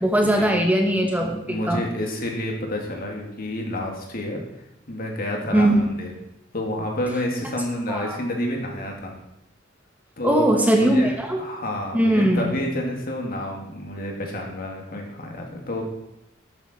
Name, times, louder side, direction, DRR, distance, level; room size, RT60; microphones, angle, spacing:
voice 1, 0.0-1.8 5.5-5.8 7.9-8.2 10.2-11.4 11.9-12.5, right 1 dB, 10° right, 3 dB, 1.0 m, -20 dB
voice 2, 1.5-4.4 4.9-6.1 6.5-9.1 10.2-10.5 10.7-11.1 11.4-15.8, left 1 dB, 50° left, 1 dB, 2.5 m, -29 dB
12.0 x 9.1 x 4.5 m, 0.85 s
head